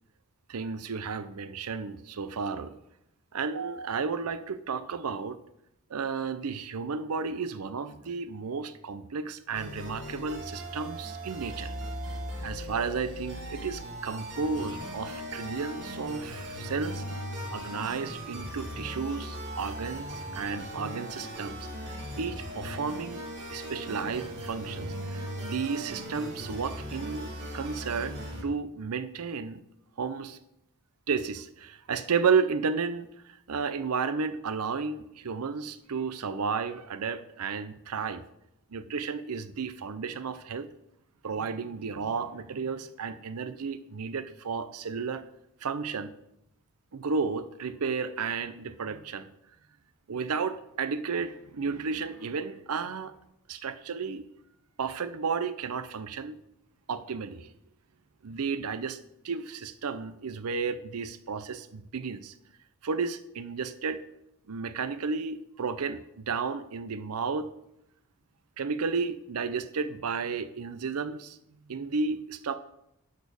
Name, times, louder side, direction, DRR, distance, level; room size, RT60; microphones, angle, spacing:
voice 1, 0.5-2.7 3.3-5.4 5.9-11.7 12.4-17.0 17.5-21.9 22.2-23.2 23.5-28.2 28.4-29.6 30.0-30.4 31.1-38.2 38.7-40.7 41.2-45.2 45.6-46.1 46.9-49.3 50.1-53.1 53.5-54.3 54.8-56.4 56.9-57.5 58.2-59.0 59.2-62.3 62.8-64.0 64.5-67.5 68.6-71.4 71.7-72.6, right 5 dB, 85° right, 12 dB, 0.6 m, -32 dB
sound 1, 9.5-28.4, equal, 55° right, 2.1 m, -38 dB
11.0 x 4.2 x 6.9 m, 0.80 s
head